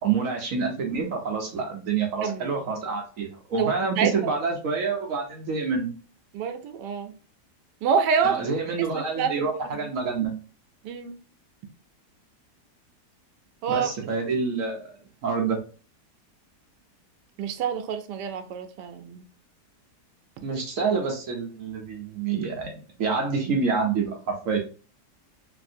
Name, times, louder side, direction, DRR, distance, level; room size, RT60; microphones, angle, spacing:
voice 1, 0.0-5.9 8.2-10.3 13.7-14.9 15.2-15.6 20.4-24.6, right 5 dB, 65° right, 0.9 m, -27 dB
voice 2, 2.2-2.5 3.6-4.1 6.3-7.1 7.8-8.4 8.8-9.5 9.8-9.9 10.8-11.2 13.6-13.9 17.4-19.3, right 6 dB, 80° right, 1.2 m, -27 dB
3.3 x 2.6 x 2.5 m
omnidirectional pair, 1.8 m